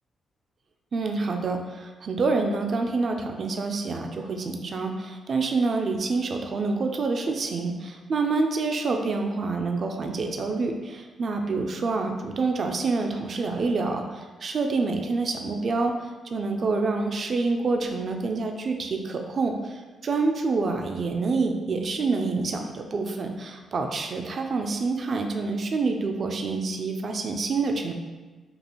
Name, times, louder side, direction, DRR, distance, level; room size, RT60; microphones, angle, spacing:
voice 1, 0.9-27.9, right 3 dB, 45° right, 4 dB, 0.4 m, -27 dB
5.2 x 2.4 x 3.1 m, 1.3 s
cardioid pair, 125°, 0 cm